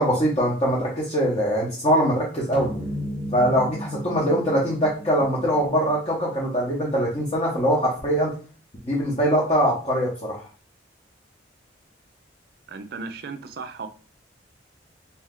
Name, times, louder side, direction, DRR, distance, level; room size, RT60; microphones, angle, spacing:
voice 1, 0.0-2.7 3.3-8.3 8.8-10.4, equal, 30° left, -4 dB, 0.7 m, -22 dB
sound 1, 2.5-7.1, equal, 35° right, 0.8 m, -35 dB
voice 2, 12.7-13.9, right 4 dB, 50° right, 9 dB, 0.4 m, -35 dB
2.7 x 2.2 x 3.6 m, 0.39 s
head